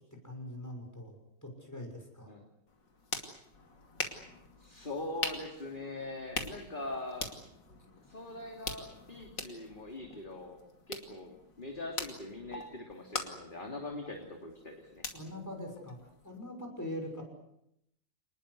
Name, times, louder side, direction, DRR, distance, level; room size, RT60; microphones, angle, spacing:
voice 1, 0.2-1.1 1.4-2.3 15.1-16.0 16.2-17.2, left 1 dB, 10° left, 3 dB, 6.3 m, -42 dB
sound 1, 2.7-16.4, left 4 dB, 90° left, 3.3 m, -43 dB
voice 2, 4.6-7.3 8.1-15.0, left 2 dB, 30° left, 2 dB, 3.0 m, -42 dB
28.0 x 20.0 x 8.3 m, 0.77 s
omnidirectional pair, 1.9 m